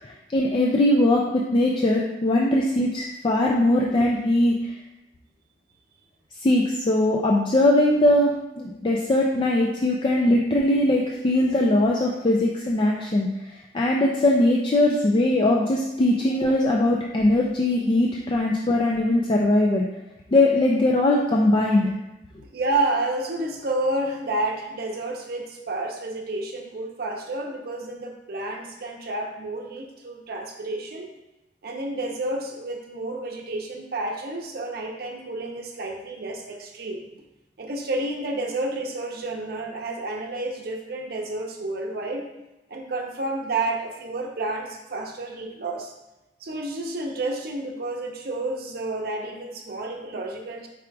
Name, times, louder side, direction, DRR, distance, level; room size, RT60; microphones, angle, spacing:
voice 1, 0.0-4.7 6.4-13.3 13.7-19.9 20.3-21.9, left 1 dB, 30° left, -2 dB, 0.3 m, -21 dB
voice 2, 22.5-31.1 31.6-37.1 37.6-42.3 42.7-45.9 46.4-50.7, right 2 dB, 60° right, 1 dB, 0.6 m, -30 dB
4.8 x 2.4 x 4.5 m, 0.98 s
head